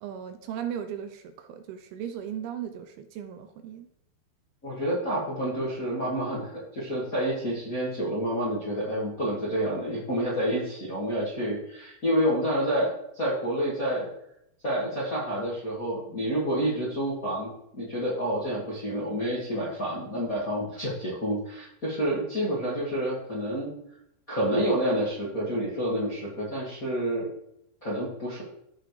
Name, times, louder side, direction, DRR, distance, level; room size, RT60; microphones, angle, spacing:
voice 1, 0.0-3.9, right 9 dB, 80° right, 8 dB, 2.4 m, -37 dB
voice 2, 4.6-14.1 14.6-23.7 24.3-27.3 27.8-28.4, equal, 35° left, -7 dB, 1.3 m, -29 dB
15.0 x 5.9 x 3.2 m, 0.77 s
omnidirectional pair, 4.7 m